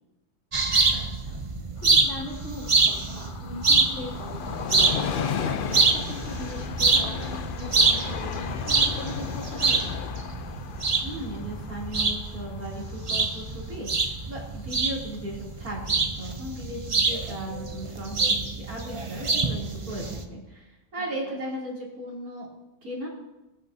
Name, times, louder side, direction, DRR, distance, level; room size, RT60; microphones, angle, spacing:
sound 1, 0.5-20.2, right 3 dB, 35° right, 0.5 m, -26 dB
voice 1, 0.9-1.4 1.8-9.9 21.2-21.3, left 2 dB, 50° left, -5 dB, 3.1 m, -39 dB
Train, 1.8-15.1 15.4-15.5, left 7 dB, 75° left, 0.4 m, -35 dB
voice 2, 11.0-22.5 22.8-23.1, right 1 dB, 70° right, -5 dB, 3.6 m, -37 dB
19.5 x 8.5 x 2.8 m, 0.97 s
omnidirectional pair, 1.6 m